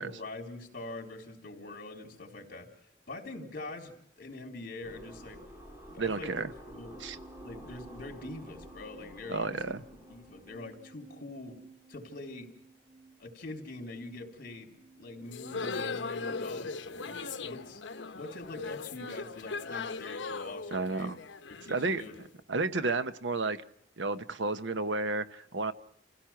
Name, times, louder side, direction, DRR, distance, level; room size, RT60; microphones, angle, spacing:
voice 1, 0.0-2.7 3.1-5.4 5.9-6.4 6.7-7.0 7.4-9.7 10.1-11.6 11.9-12.5 13.2-17.8 18.1-21.1 21.5-22.2, left 2 dB, 55° left, 4 dB, 3.8 m, -44 dB
sound 1, 4.8-10.6, equal, 15° right, 2.8 m, -50 dB
voice 2, 6.0-6.5 7.0-7.2 9.3-9.8 20.7-21.2 21.7-22.0 22.5-23.6 24.0-25.7, right 3 dB, 75° right, 12 dB, 1.0 m, -31 dB
sound 2, 6.9-16.6, right 3 dB, 45° right, 2.5 m, -57 dB
sound 3, 15.3-22.3, left 4 dB, 80° left, 1.0 m, -38 dB
28.0 x 16.5 x 5.9 m, 0.72 s
head